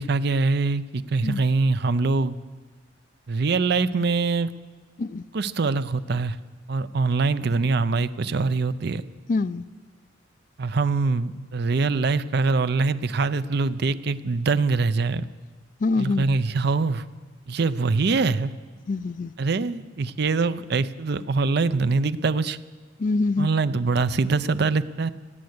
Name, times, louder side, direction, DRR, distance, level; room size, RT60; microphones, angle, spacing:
voice 1, 0.0-2.4 3.3-4.5 5.3-6.4 6.7-9.0 10.6-15.2 15.9-17.0 17.5-18.5 19.4-22.6 23.4-25.1, right 4 dB, 55° right, 14 dB, 0.5 m, -23 dB
voice 2, 9.3-9.6 15.8-16.4 18.9-19.3 23.0-23.5, left 3 dB, 45° left, 16 dB, 0.4 m, -25 dB
17.0 x 9.6 x 8.0 m, 1.4 s
head